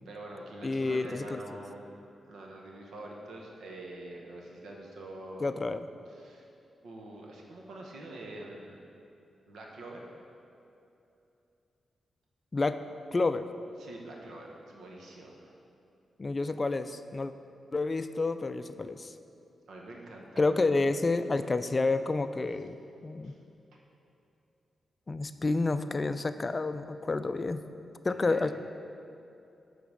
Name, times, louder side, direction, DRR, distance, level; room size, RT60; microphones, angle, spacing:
voice 1, 0.0-5.5 6.1-6.5 6.8-8.8 9.5-10.0 13.8-15.5 19.7-20.5 23.2-23.4 28.1-28.4, right 1 dB, 80° right, -1 dB, 1.1 m, -45 dB
voice 2, 0.6-1.4 5.4-5.9 12.5-12.8 13.1-13.4 16.2-17.3 17.7-19.1 20.4-23.3 25.1-27.6 28.0-28.5, left 3 dB, 35° left, 11 dB, 0.3 m, -29 dB
8.4 x 4.0 x 6.3 m, 2.7 s
cardioid pair, 70°, 0 cm